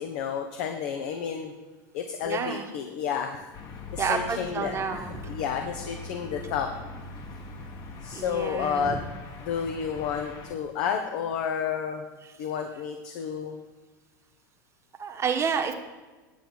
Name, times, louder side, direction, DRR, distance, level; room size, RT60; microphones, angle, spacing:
voice 1, 0.0-1.5 1.9-3.5 3.9-6.7 8.0-9.1 9.4-12.0 12.4-13.6, left 7 dB, 65° left, 5 dB, 1.1 m, -31 dB
voice 2, 2.2-2.7 4.0-5.2 8.1-9.0 15.0-15.7, right 6 dB, 25° right, 4 dB, 1.4 m, -29 dB
sound 1, 3.5-10.5, left 3 dB, 40° left, 1.5 m, -42 dB
9.9 x 7.0 x 5.9 m, 1.2 s
supercardioid pair, 110°, 10 cm